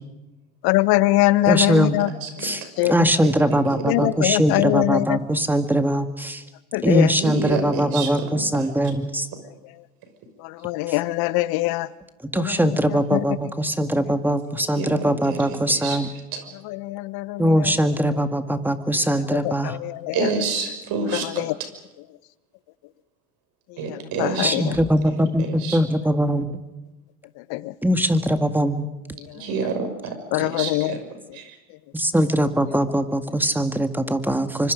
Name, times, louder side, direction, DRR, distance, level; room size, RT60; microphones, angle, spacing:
voice 1, 0.6-2.1 2.4-3.1 3.9-5.2 6.7-7.1 10.4-11.9 12.3-13.4 14.1-14.2 16.6-17.8 19.3-20.3 21.1-21.5 23.7-24.7 27.4-27.8 29.2-29.5 30.3-31.0 31.7-31.8 32.7-32.8, left 18 dB, 60° left, 16 dB, 1.1 m, -23 dB
voice 2, 1.5-2.0 2.4-2.6 2.9-6.4 6.8-9.3 12.3-16.1 17.4-19.8 24.4-26.5 27.8-28.9 31.9-34.7, right 1 dB, 5° right, 8 dB, 1.9 m, -21 dB
voice 3, 2.0-2.3 2.6-2.9 3.2-3.6 3.8-3.9 7.2-8.7 14.7-16.0 16.3-16.5 20.1-21.5 23.8-24.8 25.4-25.8 29.3-31.0 31.3-31.6, right 4 dB, 55° right, 6 dB, 6.2 m, -29 dB
27.5 x 24.5 x 5.3 m, 1.1 s
hypercardioid pair, 90°, 42 cm